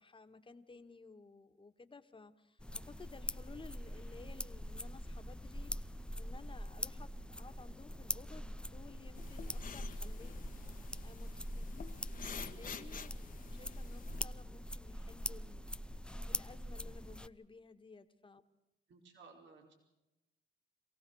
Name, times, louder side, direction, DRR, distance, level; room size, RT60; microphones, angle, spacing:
voice 1, 0.0-11.9 12.1-15.7 16.3-18.4, left 4 dB, 25° left, 7 dB, 1.9 m, -56 dB
sound 1, 2.6-17.3, equal, 5° left, 0.7 m, -43 dB
sound 2, 9.2-14.2, left 6 dB, 45° left, 1.5 m, -49 dB
voice 2, 12.2-12.9 18.9-19.7, right 4 dB, 70° right, 2 dB, 4.6 m, -58 dB
27.0 x 17.0 x 6.5 m, 0.96 s
cardioid pair, 90°, 20 cm